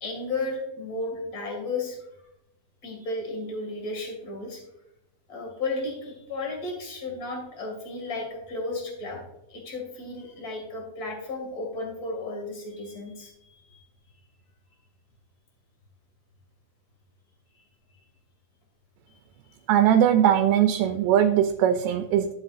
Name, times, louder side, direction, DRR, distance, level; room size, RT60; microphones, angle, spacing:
voice 1, 0.0-2.0 2.8-4.6 5.3-9.2 9.5-13.8 19.1-19.2, left 2 dB, 30° left, 0 dB, 2.4 m, -34 dB
voice 2, 19.7-22.3, right 10 dB, 85° right, 7 dB, 2.2 m, -20 dB
11.5 x 7.8 x 2.5 m, 0.85 s
omnidirectional pair, 3.7 m